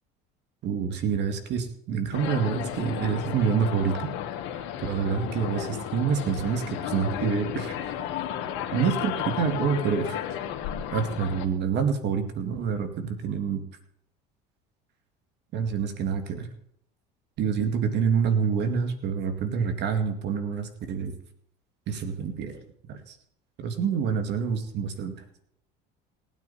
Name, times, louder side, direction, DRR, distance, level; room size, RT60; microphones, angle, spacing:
voice 1, 0.6-4.1 4.8-7.8 8.7-10.2 10.9-13.6 15.5-16.5 17.4-21.2 21.9-22.6 22.9-23.2 23.6-25.1, right 6 dB, 60° right, 7 dB, 2.2 m, -27 dB
sound 1, 2.1-11.5, left 10 dB, 70° left, 1.6 m, -33 dB
18.5 x 9.3 x 4.2 m, 0.71 s
supercardioid pair, 90°, 20 cm